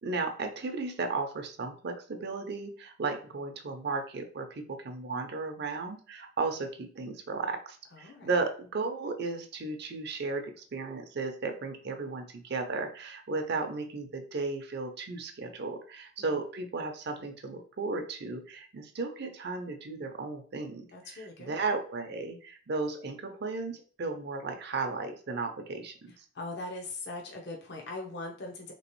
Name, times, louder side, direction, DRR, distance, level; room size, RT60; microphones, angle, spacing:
voice 1, 0.0-20.9 21.4-26.1, right 3 dB, 60° right, 5 dB, 0.5 m, -35 dB
voice 2, 7.9-8.4 16.3-16.4 20.9-21.6 26.3-28.7, left 2 dB, 60° left, 1 dB, 0.7 m, -40 dB
3.3 x 3.0 x 3.0 m, 0.42 s
head